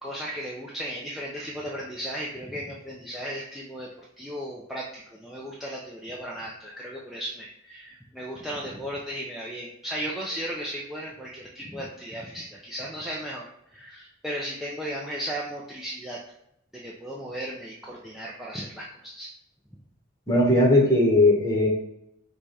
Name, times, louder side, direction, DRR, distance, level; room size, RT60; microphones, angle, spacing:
voice 1, 0.0-16.2 16.7-19.3, equal, ahead, -5 dB, 0.4 m, -36 dB
voice 2, 20.3-21.7, left 1 dB, 15° left, -2 dB, 1.0 m, -19 dB
4.7 x 2.3 x 4.0 m, 0.76 s
head